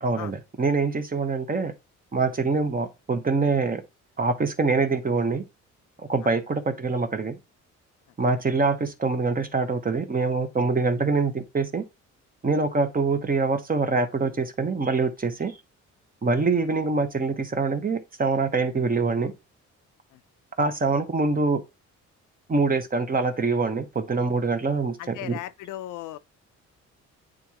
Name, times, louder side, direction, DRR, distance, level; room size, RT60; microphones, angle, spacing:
voice 1, 0.0-1.7 2.1-3.8 4.2-5.4 6.0-7.4 8.2-11.8 12.4-15.5 16.2-19.3 20.6-21.6 22.5-25.4, right 4 dB, 30° right, 1.1 m, -24 dB
voice 2, 25.0-26.2, left 14 dB, 85° left, 0.6 m, -37 dB
9.0 x 3.7 x 3.0 m
cardioid pair, 90°, 30 cm